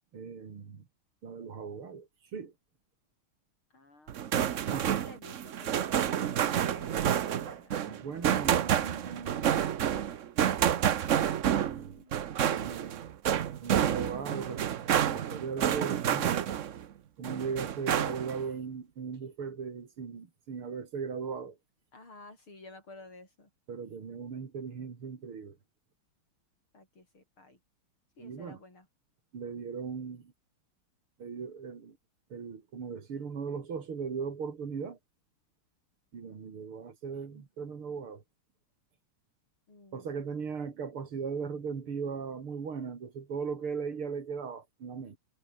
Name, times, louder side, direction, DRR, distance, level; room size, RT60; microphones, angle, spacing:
voice 1, 0.1-0.8 1.2-2.5 4.7-5.0 7.9-10.3 11.7-11.9 12.4-13.0 13.6-16.5 17.2-21.6 23.7-25.6 28.2-28.6 29.3-30.3 31.2-32.0 32.3-35.0 36.1-38.2 39.9-45.2, right 6 dB, 85° right, 3.7 m, -38 dB
voice 2, 3.7-7.0 7.3-7.7 11.6-12.3 21.9-23.5 26.7-27.6 28.2-28.9 39.7-40.2, left 2 dB, 75° left, 8.5 m, -53 dB
sound 1, 4.1-16.8 17.2-18.4, right 9 dB, 60° right, 0.8 m, -29 dB
omnidirectional pair, 2.3 m